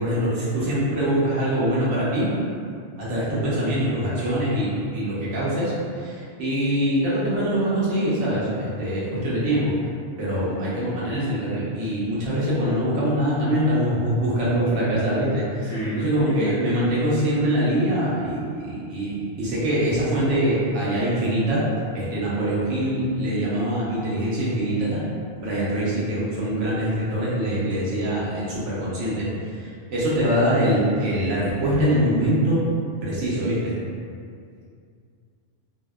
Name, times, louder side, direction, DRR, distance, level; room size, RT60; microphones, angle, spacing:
voice 1, 0.0-2.3 3.0-9.7 10.2-21.6 21.9-25.0 25.4-29.3 29.6-32.6 33.0-33.7, right 1 dB, 90° right, -8 dB, 1.1 m, -23 dB
voice 2, 15.6-16.6, right 1 dB, 60° left, -9 dB, 0.6 m, -30 dB
2.7 x 2.0 x 2.2 m, 2.3 s
omnidirectional pair, 1.2 m